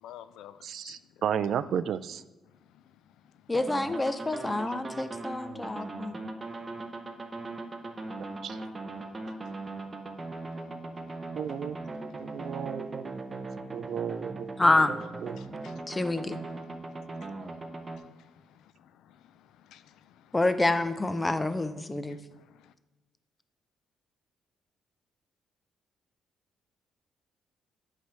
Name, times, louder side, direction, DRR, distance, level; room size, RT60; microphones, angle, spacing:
voice 1, 0.0-1.0 7.6-8.6 9.3-9.5 9.8-12.7 13.4-14.0 15.4-15.8 16.5-16.9 17.3-20.4 22.3-22.7, left 10 dB, 85° left, 0.3 m, -55 dB
voice 2, 0.6-2.2 8.4-8.6 11.4-11.8 12.2-13.4 13.7-14.5 14.8-14.9 15.2-15.4, right 8 dB, 65° right, 0.3 m, -33 dB
voice 3, 3.5-6.2 14.6-14.9 15.9-16.4 20.3-22.2, left 2 dB, 15° left, 0.5 m, -27 dB
sound 1, 3.5-18.0, right 2 dB, 25° right, 0.7 m, -39 dB
8.2 x 3.3 x 6.0 m
cardioid pair, 90°, 0 cm